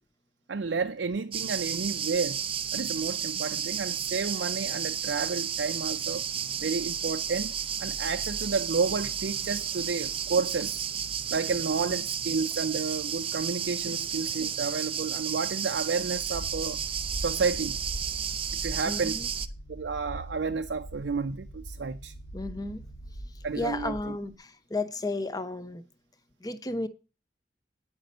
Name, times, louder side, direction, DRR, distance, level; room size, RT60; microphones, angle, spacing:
voice 1, 0.5-2.4 2.7-6.3 6.6-7.5 7.8-10.8 11.3-16.8 17.2-17.8 18.6-19.2 19.7-22.1 23.4-24.0, right 4 dB, 85° right, 0.5 m, -31 dB
sound 1, 1.3-19.5, right 8 dB, 30° right, 0.5 m, -32 dB
sound 2, 16.0-24.4, right 1 dB, 85° left, 1.6 m, -41 dB
voice 2, 18.8-19.3 22.3-22.8 23.5-25.8 26.4-26.9, left 2 dB, 20° left, 0.8 m, -33 dB
9.2 x 5.2 x 6.5 m
head